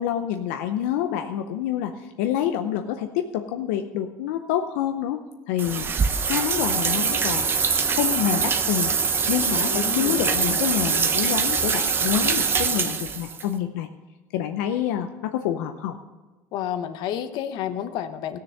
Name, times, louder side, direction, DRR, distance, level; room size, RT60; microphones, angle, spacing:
voice 1, 0.0-5.9 6.2-7.6 7.9-8.9 9.3-13.9 14.3-15.9, left 10 dB, 85° left, 6 dB, 0.6 m, -27 dB
sound 1, 5.6-13.4, right 5 dB, 30° right, 0.8 m, -23 dB
voice 2, 9.7-10.7 16.5-18.4, left 10 dB, 65° left, 10 dB, 0.9 m, -30 dB
15.0 x 6.7 x 6.5 m, 1.2 s
supercardioid pair, 110°, 8 cm